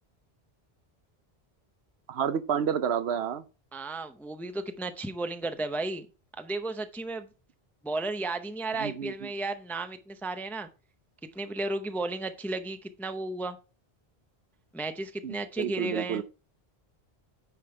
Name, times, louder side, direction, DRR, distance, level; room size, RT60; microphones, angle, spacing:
voice 1, 2.1-3.4 8.8-9.3 15.2-16.2, right 8 dB, 85° right, 0.9 m, -30 dB
voice 2, 3.7-6.1 6.4-7.3 7.8-10.7 11.3-13.6 14.7-16.2, right 2 dB, 5° left, 0.4 m, -34 dB
9.3 x 5.1 x 3.3 m
omnidirectional pair, 1.1 m